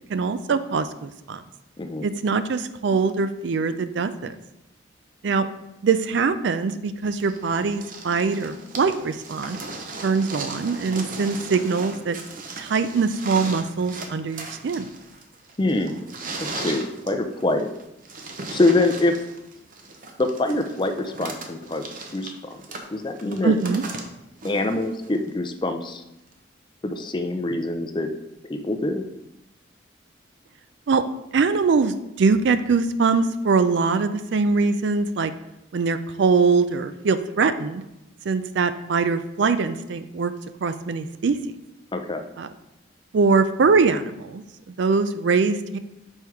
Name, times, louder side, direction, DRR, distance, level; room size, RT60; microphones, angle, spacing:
voice 1, 0.1-1.4 2.0-4.3 5.2-5.5 5.8-9.6 10.0-12.2 12.6-14.9 23.4-23.8 30.9-31.0 31.3-35.3 35.7-37.8 38.3-40.3 40.6-41.4 42.4-42.5 43.1-44.4 44.7-45.8, right 4 dB, 65° right, 11 dB, 0.4 m, -22 dB
sound 1, 7.2-25.3 26.3-26.4, right 3 dB, 45° right, 0.7 m, -37 dB
voice 2, 15.6-16.1 16.4-17.7 18.5-19.2 20.2-21.9 22.1-22.6 22.9-23.6 24.4-26.0 26.8-28.1 28.4-29.0 41.9-42.3, left 2 dB, 25° left, 6 dB, 0.4 m, -24 dB
5.4 x 4.5 x 4.7 m, 0.89 s
head